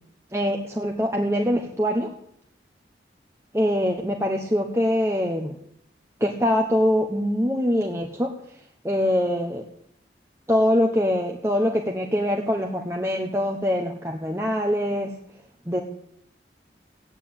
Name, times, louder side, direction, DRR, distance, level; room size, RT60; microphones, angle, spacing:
voice 1, 0.3-2.1 3.5-5.6 6.2-8.3 8.8-9.7 10.5-15.1 15.7-15.8, equal, 15° right, 1 dB, 1.2 m, -23 dB
15.5 x 9.7 x 8.7 m, 0.72 s
head